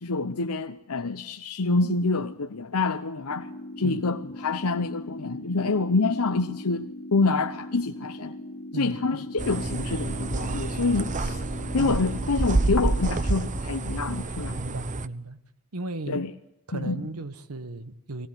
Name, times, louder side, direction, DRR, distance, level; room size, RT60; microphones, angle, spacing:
voice 1, 0.0-3.5 3.8-8.4 8.7-11.4 11.7-14.6 16.1-16.3 16.7-17.0, left 3 dB, 85° left, 0.9 m, -27 dB
sound 1, 3.3-13.3, left 1 dB, 45° left, 1.0 m, -40 dB
sound 2, 9.4-15.1, right 2 dB, 35° right, 0.8 m, -28 dB
voice 2, 14.6-15.4 15.7-16.2 16.7-18.3, right 2 dB, 90° right, 1.3 m, -35 dB
22.0 x 18.0 x 8.1 m
head